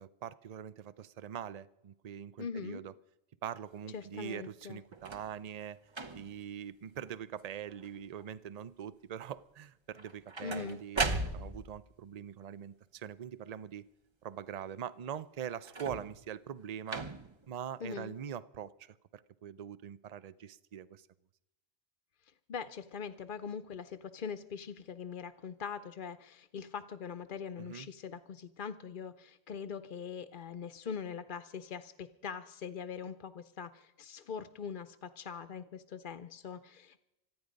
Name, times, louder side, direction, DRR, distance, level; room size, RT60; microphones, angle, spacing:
voice 1, 0.0-2.9 3.4-5.8 6.1-13.8 14.2-17.1 17.5-21.1 27.6-27.9, right 9 dB, 45° right, 17 dB, 0.6 m, -43 dB
voice 2, 2.4-2.8 3.9-4.8 10.4-10.8 17.8-18.1 22.3-37.0, left 6 dB, 50° left, 10 dB, 0.8 m, -42 dB
sound 1, 4.9-5.3 5.9-6.4 7.0-7.4 7.7-8.2 9.9-11.8 15.6-16.3 16.9-17.4 18.3-18.4, right 3 dB, 25° right, 0.9 m, -38 dB
25.5 x 9.6 x 5.2 m, 0.89 s
omnidirectional pair, 1.2 m